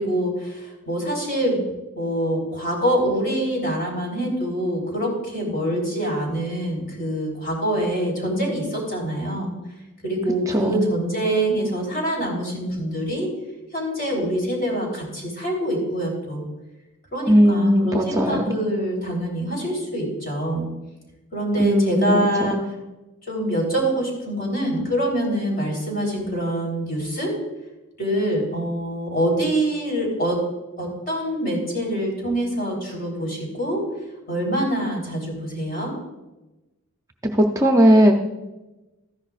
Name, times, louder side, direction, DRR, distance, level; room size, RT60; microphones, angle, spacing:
voice 1, 0.0-1.6 2.0-9.5 10.0-13.3 13.7-16.4 17.1-20.7 21.3-22.6 23.3-27.3 28.0-30.4 30.8-33.8 34.3-35.9, right 1 dB, 40° left, -1 dB, 3.7 m, -25 dB
voice 2, 10.5-10.8 17.3-18.5 21.6-22.6 37.2-38.1, equal, 15° right, 3 dB, 0.6 m, -18 dB
14.0 x 11.0 x 2.5 m, 1.0 s
head